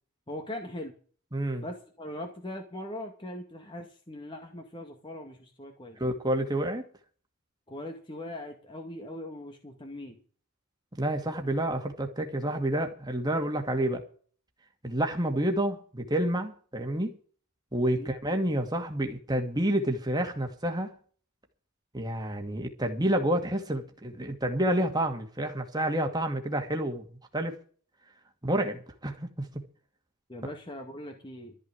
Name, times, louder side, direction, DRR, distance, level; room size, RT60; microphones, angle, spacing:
voice 1, 0.3-0.9 1.6-6.0 7.7-10.2 17.9-18.1 30.3-31.6, left 1 dB, 25° left, 2.1 m, -40 dB
voice 2, 1.3-1.7 6.0-6.8 11.0-14.0 14.8-17.2 17.7-20.9 21.9-27.0 27.3-27.6 28.4-29.6 30.4-30.5, right 1 dB, 20° right, 2.3 m, -29 dB
13.5 x 6.3 x 9.9 m
head